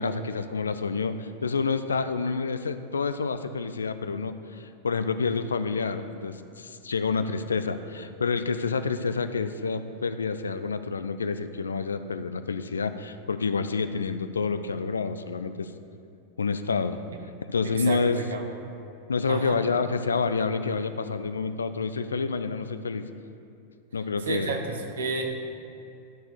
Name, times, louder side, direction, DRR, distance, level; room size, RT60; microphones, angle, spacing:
voice 1, 0.0-15.7 16.4-17.0 17.5-18.2 19.1-23.1 23.9-24.6, left 4 dB, 75° left, 11 dB, 0.4 m, -28 dB
voice 2, 17.6-18.4 19.2-19.6 24.2-25.3, right 4 dB, 65° right, 4 dB, 1.1 m, -31 dB
12.5 x 4.4 x 6.6 m, 2.6 s
figure-of-eight pair, 90°, 0 cm